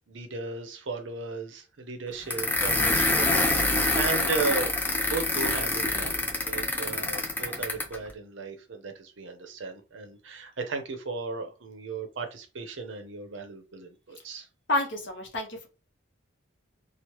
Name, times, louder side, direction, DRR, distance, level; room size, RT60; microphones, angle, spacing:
voice 1, 0.1-4.8 5.0-6.2 6.5-14.5, right 4 dB, 65° right, 0.6 m, -35 dB
sound 1, 2.3-8.0, left 2 dB, 10° left, 0.3 m, -26 dB
voice 2, 14.7-15.7, left 1 dB, 60° left, 0.7 m, -29 dB
3.0 x 2.1 x 2.9 m
head